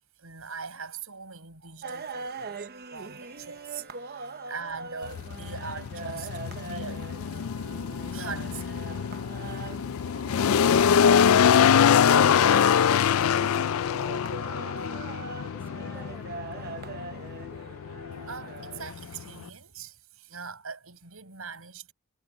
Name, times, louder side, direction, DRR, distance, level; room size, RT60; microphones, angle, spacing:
voice 1, 0.2-6.3 6.6-7.4 8.1-8.9 18.3-21.9, right 5 dB, 75° right, 6.4 m, -42 dB
sound 1, 1.8-18.9, right 4 dB, 45° right, 1.0 m, -41 dB
sound 2, 3.2-14.8, equal, 10° left, 6.2 m, -65 dB
sound 3, 5.0-19.5, left 8 dB, 70° left, 0.4 m, -24 dB
voice 2, 11.0-16.7, right 1 dB, 10° right, 5.8 m, -53 dB
head